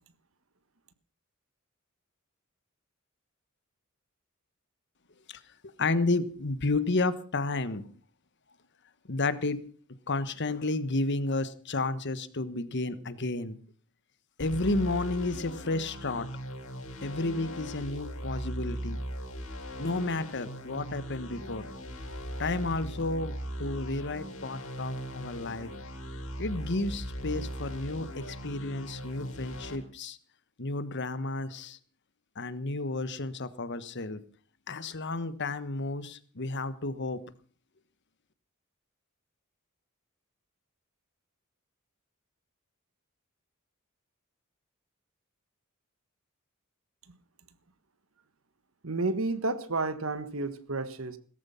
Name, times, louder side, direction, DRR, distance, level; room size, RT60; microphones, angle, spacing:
voice 1, 5.8-7.8 9.1-9.6 10.1-13.6 14.4-16.3 17.0-19.0 19.8-21.6 22.4-25.7 26.4-30.2 30.6-31.8 32.4-34.2 34.7-37.2, left 2 dB, 55° left, 1.3 m, -31 dB
sound 1, 14.4-29.8, equal, 90° left, 6.1 m, -39 dB
voice 2, 48.8-51.2, right 3 dB, 70° right, 1.5 m, -31 dB
17.5 x 14.0 x 5.7 m
head